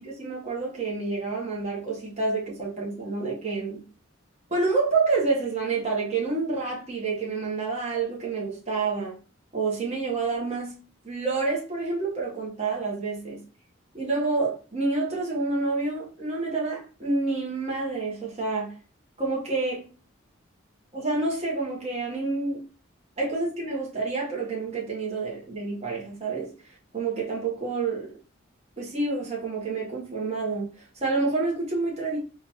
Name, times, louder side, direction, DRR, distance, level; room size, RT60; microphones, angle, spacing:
voice 1, 0.0-3.8 4.5-9.2 9.5-10.7 11.0-13.4 13.9-18.7 19.2-19.8 20.9-22.6 23.2-26.5 26.9-28.1 28.8-30.7 31.0-32.2, right 3 dB, 35° right, 1.0 m, -28 dB
3.7 x 2.3 x 2.9 m
head